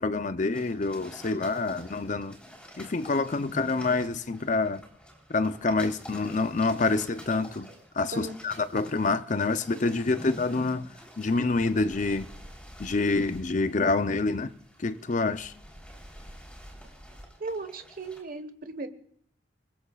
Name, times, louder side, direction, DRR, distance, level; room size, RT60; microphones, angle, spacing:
voice 1, 0.0-2.4 2.8-4.8 5.3-7.7 7.9-10.9 11.2-12.3 12.8-14.5 14.8-15.5, left 3 dB, 45° left, 0.6 m, -27 dB
sound 1, 0.5-18.2, equal, 5° left, 3.8 m, -48 dB
voice 2, 17.4-18.9, right 3 dB, 50° right, 1.3 m, -36 dB
28.0 x 20.0 x 2.4 m
head